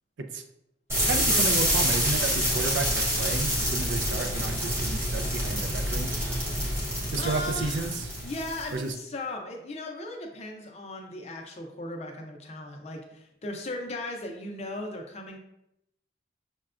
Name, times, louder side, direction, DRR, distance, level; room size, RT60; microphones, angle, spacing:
sound 1, 0.9-8.8, equal, 15° right, 0.9 m, -27 dB
voice 1, 1.0-6.2 7.1-8.1 8.7-8.9, right 3 dB, 80° right, 6 dB, 0.4 m, -32 dB
voice 2, 7.2-8.0 8.2-15.4, left 2 dB, 35° left, 2 dB, 0.5 m, -37 dB
5.6 x 2.2 x 2.4 m, 0.81 s
head